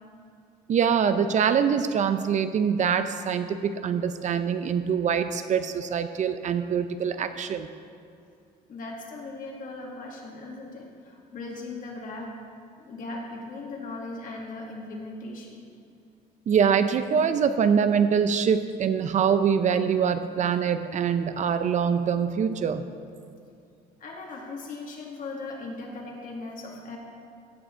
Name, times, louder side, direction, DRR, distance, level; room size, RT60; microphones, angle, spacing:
voice 1, 0.7-7.7 16.5-22.8, right 7 dB, 45° right, 10 dB, 0.5 m, -24 dB
voice 2, 8.7-12.3 12.8-15.7 24.0-27.0, left 3 dB, 55° left, -1 dB, 2.2 m, -38 dB
16.0 x 6.3 x 4.5 m, 2.4 s
cardioid pair, 110°, 17 cm